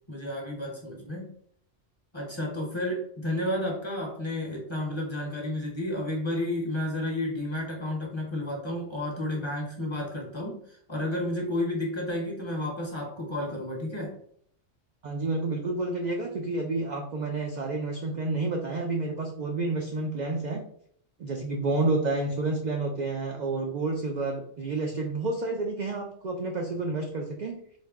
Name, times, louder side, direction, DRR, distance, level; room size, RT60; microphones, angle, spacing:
voice 1, 0.1-1.3 2.1-14.1, left 1 dB, 30° left, -1 dB, 0.7 m, -31 dB
voice 2, 15.0-20.6 21.2-27.6, right 2 dB, 60° right, 1 dB, 0.4 m, -30 dB
4.0 x 2.1 x 3.4 m, 0.65 s
omnidirectional pair, 1.2 m